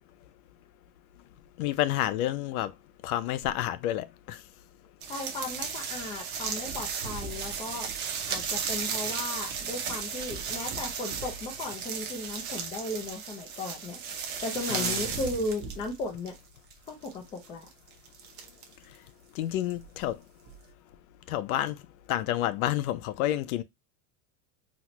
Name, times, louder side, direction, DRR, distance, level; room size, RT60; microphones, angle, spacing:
voice 1, 1.6-2.7 3.0-4.4 14.7-15.2 19.3-20.2 21.3-21.8 22.1-23.6, left 13 dB, 85° left, 0.6 m, -29 dB
sound 1, 5.0-16.4 16.7-19.0 19.7-19.9 20.5-20.6, right 6 dB, 25° right, 0.6 m, -35 dB
voice 2, 5.1-7.9 8.3-14.0 14.4-16.3 16.9-17.6, left 2 dB, 15° left, 0.4 m, -36 dB
4.1 x 2.1 x 2.9 m
supercardioid pair, 160°, 42 cm